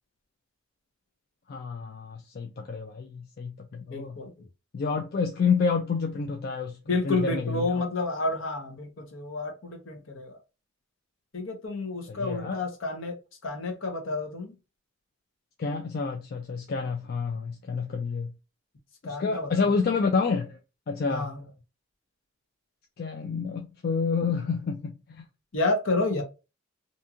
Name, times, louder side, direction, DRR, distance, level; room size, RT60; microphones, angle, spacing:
voice 1, 1.5-4.2 4.7-6.8 7.0-7.8 12.1-12.6 15.6-18.3 19.0-20.6 20.9-21.3 23.0-25.3, left 5 dB, 45° left, 0.4 m, -29 dB
voice 2, 3.9-4.5 6.9-10.4 11.3-14.5 19.0-19.8 21.1-21.4 25.5-26.2, left 2 dB, 70° left, 0.9 m, -30 dB
2.7 x 2.4 x 2.7 m
head